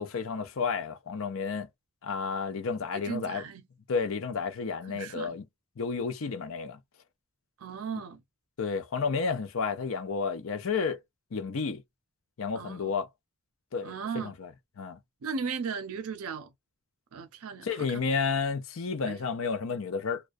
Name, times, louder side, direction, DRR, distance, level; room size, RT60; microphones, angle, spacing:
voice 1, 0.0-1.7 2.0-3.4 3.9-5.4 5.8-6.8 8.6-11.0 11.3-11.8 12.4-13.1 13.7-14.5 14.8-15.0 17.6-20.2, left 5 dB, 65° left, 0.5 m, -31 dB
voice 2, 2.9-3.6 4.9-5.4 7.6-8.2 12.5-12.9 13.8-14.3 15.2-16.5 17.1-18.2 19.1-19.2, right 6 dB, 85° right, 0.5 m, -37 dB
2.3 x 2.1 x 2.4 m
head